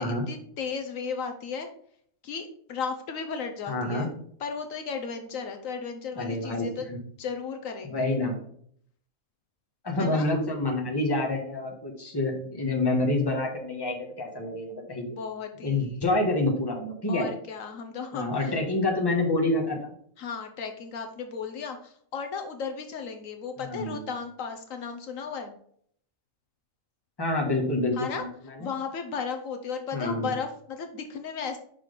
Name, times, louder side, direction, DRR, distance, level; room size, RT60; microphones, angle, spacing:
voice 1, 0.0-1.7 2.2-4.1 4.4-6.9 7.2-8.1 10.0-10.3 15.2-16.0 17.1-18.6 20.2-25.6 27.9-28.2 28.6-31.6, left 5 dB, 75° left, 5 dB, 1.1 m, -35 dB
voice 2, 3.7-4.1 6.2-7.0 7.8-8.3 9.8-15.2 15.6-17.3 18.1-19.8 23.6-24.0 27.2-28.7 29.9-30.3, left 2 dB, 20° left, 0 dB, 1.3 m, -27 dB
5.7 x 4.1 x 5.0 m, 0.63 s
omnidirectional pair, 1.4 m